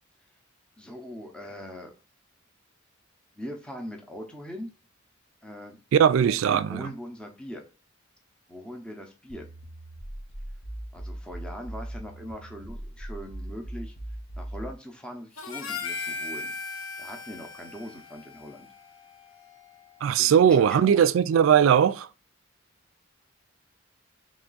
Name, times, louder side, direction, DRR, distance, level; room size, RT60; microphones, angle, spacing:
voice 1, 0.8-1.9 3.4-4.7 5.4-5.8 6.2-7.6 8.5-9.5 10.9-13.9 14.4-16.5 17.0-18.7 20.2-21.0, equal, 5° left, 0.6 m, -41 dB
voice 2, 5.9-6.9 20.0-22.1, right 8 dB, 75° right, 0.3 m, -19 dB
sound 1, 9.3-14.8, right 1 dB, 65° left, 1.0 m, -39 dB
Harmonica, 15.4-19.8, left 4 dB, 85° left, 0.8 m, -38 dB
3.5 x 3.1 x 3.9 m
head